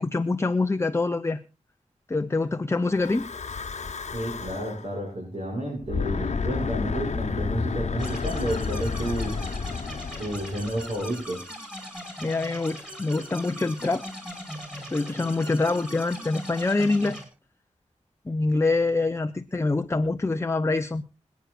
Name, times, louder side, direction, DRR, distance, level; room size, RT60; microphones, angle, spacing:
voice 1, 0.0-1.4 2.1-3.3 12.2-14.0 14.9-17.2 18.3-21.0, left 3 dB, 20° left, 8 dB, 0.7 m, -25 dB
Breathing / Wind, 2.9-4.9 5.8-11.2, left 4 dB, 65° left, 1.1 m, -31 dB
voice 2, 4.1-9.4 10.2-11.4, right 1 dB, 50° right, -2 dB, 6.9 m, -31 dB
sound 1, 8.0-17.2, equal, 5° right, 5.6 m, -40 dB
25.5 x 9.3 x 2.5 m, 0.32 s
wide cardioid pair, 95°, 13 cm